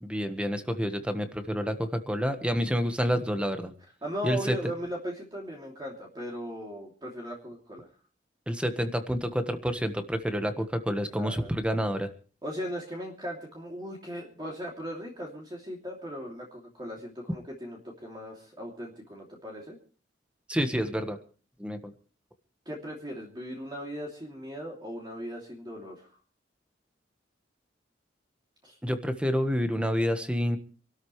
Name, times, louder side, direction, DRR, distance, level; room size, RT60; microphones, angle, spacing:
voice 1, 0.0-3.7 4.2-4.5 8.5-12.1 20.5-21.2 21.6-21.8 28.8-30.6, equal, 5° right, 8 dB, 1.4 m, -28 dB
voice 2, 4.0-7.9 11.2-11.5 12.4-19.8 22.6-26.1 28.6-28.8, equal, 25° right, -2 dB, 2.9 m, -38 dB
27.0 x 13.0 x 3.2 m, 0.38 s
head